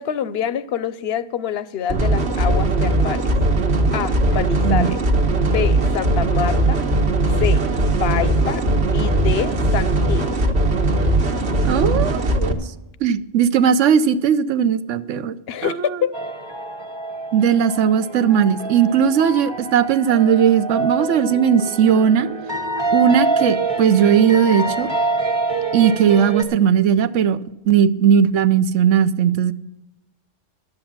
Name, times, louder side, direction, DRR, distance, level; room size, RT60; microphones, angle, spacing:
voice 1, 0.0-3.2 3.9-5.0 5.4-6.8 7.3-7.6 8.0-8.6 8.9-10.3 15.5-16.1, left 9 dB, 60° left, 16 dB, 0.8 m, -26 dB
sound 1, 1.9-12.5, right 2 dB, 60° right, 1.4 m, -19 dB
voice 2, 11.6-12.6 13.0-15.4 15.6-16.0 17.3-22.3 22.9-24.9 25.7-27.4 27.6-29.5, right 8 dB, 75° right, 12 dB, 1.0 m, -17 dB
sound 2, 16.1-26.4, right 3 dB, 20° right, 1.1 m, -26 dB
11.5 x 7.8 x 7.2 m, 0.95 s
omnidirectional pair, 1.3 m